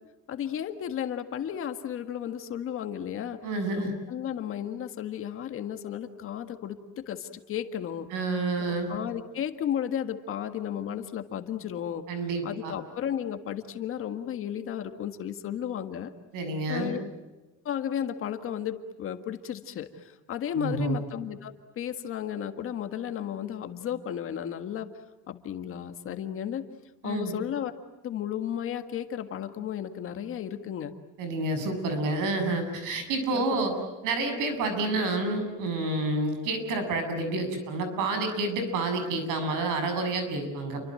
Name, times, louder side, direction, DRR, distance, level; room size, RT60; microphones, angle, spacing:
voice 1, 0.3-3.4 3.8-8.1 8.6-12.0 12.4-16.1 16.7-17.0 17.7-24.9 25.3-26.6 27.0-27.7 28.0-30.9 33.3-33.6, left 9 dB, 40° left, 8 dB, 1.7 m, -34 dB
voice 2, 3.4-3.9 8.1-8.9 12.1-12.8 16.3-16.9 20.5-21.0 27.0-27.3 31.2-33.8 34.0-40.8, right 2 dB, 70° right, 7 dB, 7.5 m, -29 dB
29.5 x 24.5 x 7.7 m, 1.1 s
cardioid pair, 180°, 32 cm